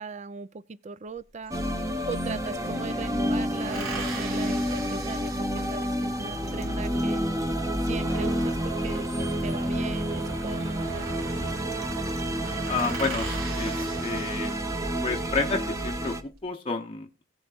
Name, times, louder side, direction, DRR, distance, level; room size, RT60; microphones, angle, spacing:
voice 1, 0.0-7.2 7.8-11.2, right 4 dB, 35° right, 0.4 m, -39 dB
sound 1, 1.5-16.2, equal, 15° right, 0.9 m, -29 dB
sound 2, 1.5-1.6 1.8-2.8 3.6-6.1 8.8-9.8 10.9-11.3 11.6-11.7 12.1-12.2 12.4-15.0 15.6-16.2, right 4 dB, 80° right, 3.6 m, -40 dB
sound 3, 8.1-15.6, right 1 dB, 60° right, 2.2 m, -41 dB
voice 2, 12.7-14.5 15.0-17.2, left 4 dB, 25° left, 0.7 m, -30 dB
17.5 x 8.0 x 2.4 m
head